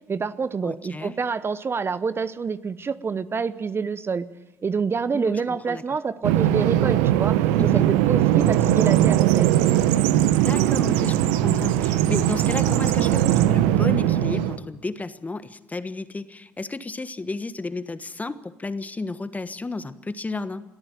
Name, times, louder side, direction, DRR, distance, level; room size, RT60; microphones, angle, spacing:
voice 1, 0.1-4.3 4.6-9.5, right 5 dB, 35° right, 15 dB, 0.9 m, -27 dB
voice 2, 0.6-1.1 5.1-5.8 7.6-7.9 10.4-20.6, left 3 dB, 20° left, 13 dB, 1.4 m, -32 dB
Bird vocalization bird call bird song, 6.2-14.6, right 12 dB, 80° right, 1.0 m, -20 dB
22.5 x 14.0 x 9.3 m, 0.99 s
hypercardioid pair, 55°, 7 cm